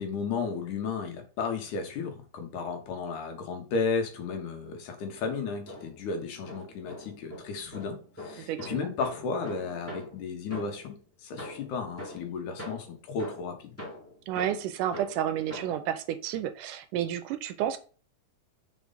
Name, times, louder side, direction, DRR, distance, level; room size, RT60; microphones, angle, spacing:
voice 1, 0.0-13.7, left 5 dB, 70° left, 2.5 m, -34 dB
sound 1, 5.0-6.1 6.5-11.0 11.4-15.9, left 1 dB, 5° left, 1.5 m, -44 dB
voice 2, 8.4-8.9 14.3-17.8, right 10 dB, 80° right, 2.1 m, -31 dB
5.0 x 4.6 x 4.0 m
omnidirectional pair, 3.8 m